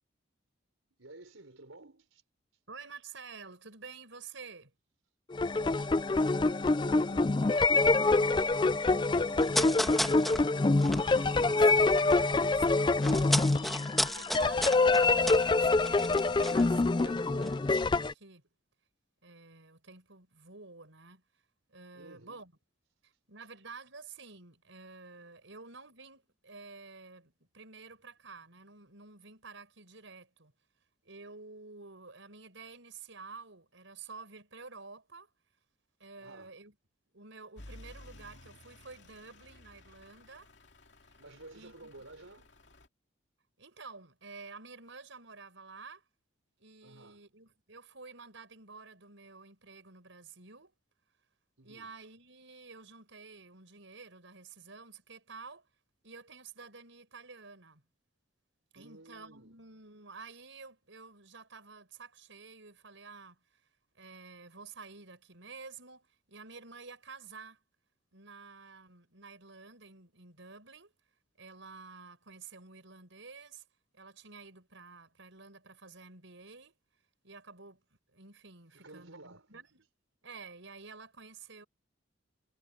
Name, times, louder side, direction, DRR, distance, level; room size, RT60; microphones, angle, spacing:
voice 1, 1.0-2.2 5.5-9.7 21.9-22.4 36.2-36.6 41.2-42.5 46.8-47.2 51.6-51.9 58.7-59.6 78.7-79.5, right 2 dB, 85° right, 4.6 m, -53 dB
voice 2, 2.7-4.7 10.6-13.4 13.9-18.4 19.2-21.2 21.7-22.5 23.0-30.5 31.0-35.3 36.0-36.7 37.1-40.5 41.5-41.9 43.6-46.0 46.6-50.7 51.6-55.7 56.0-57.8 58.7-63.4 64.0-67.6 68.1-70.9 71.4-73.6 73.9-76.7 77.2-77.8 78.1-79.9 80.2-81.7, right 4 dB, 70° right, 5.2 m, -50 dB
sound 1, 5.3-18.1, left 3 dB, 25° left, 0.3 m, -26 dB
sound 2, 9.4-12.3 12.5-17.1 17.4-17.5, equal, ahead, 1.6 m, -34 dB
Truck / Idling, 37.6-42.9, left 1 dB, 60° left, 2.7 m, -54 dB
head